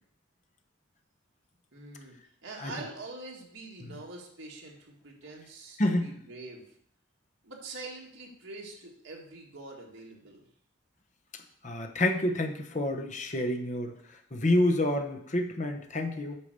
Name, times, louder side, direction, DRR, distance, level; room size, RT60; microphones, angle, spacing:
voice 1, 1.7-2.2 2.4-6.7 7.4-10.5, right 2 dB, 70° right, -2 dB, 1.9 m, -44 dB
voice 2, 5.8-6.1 11.3-13.9 14.3-16.4, left 1 dB, 35° left, 4 dB, 0.9 m, -28 dB
8.6 x 4.7 x 6.6 m, 0.67 s
head